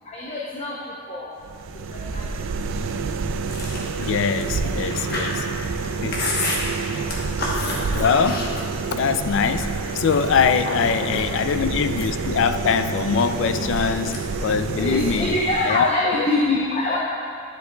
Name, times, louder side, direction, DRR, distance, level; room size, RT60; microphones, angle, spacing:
voice 1, 0.1-0.8 1.1-1.3 1.9-2.3 4.6-4.8 10.7-10.8 11.1-11.2 14.8-17.0, left 2 dB, 30° left, -5 dB, 0.7 m, -24 dB
sound 1, 1.4-16.1, right 4 dB, 85° right, 0.4 m, -28 dB
Chewing mastication, 3.5-8.9 9.3-10.4 10.9-11.4 11.8-13.8 14.1-14.4 14.7-15.5, left 2 dB, 50° left, 1.1 m, -30 dB
voice 2, 4.0-5.5 6.0-6.6 7.8-8.5 8.9-15.3 15.6-16.3, left 6 dB, 70° left, 10 dB, 0.3 m, -23 dB
10.0 x 7.8 x 2.3 m, 2.4 s
head